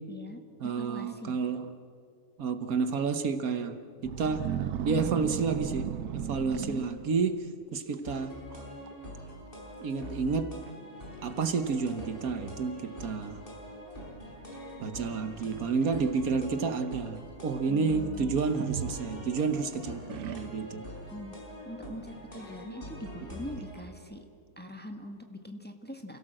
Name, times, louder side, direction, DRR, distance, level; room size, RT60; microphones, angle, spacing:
voice 1, 0.1-1.4 6.4-6.9 17.7-18.5 21.1-21.4 21.6-24.2 24.6-26.2, equal, 5° left, 4 dB, 1.5 m, -42 dB
voice 2, 0.6-1.7 2.4-4.5 4.8-8.3 9.8-10.5 11.2-13.4 14.8-20.9, right 5 dB, 70° right, 9 dB, 1.5 m, -30 dB
sound 1, 4.0-7.3 7.9-8.2 8.5-8.9 9.2-9.3 10.1-10.2 10.7-10.8 11.3-11.7 12.6-12.7 15.5-16.5 18.5-19.6 20.1-20.8, right 10 dB, 85° right, 1.3 m, -36 dB
sound 2, 8.1-23.8, equal, 35° left, 5.7 m, -44 dB
28.5 x 17.0 x 7.7 m, 2.3 s
omnidirectional pair, 1.6 m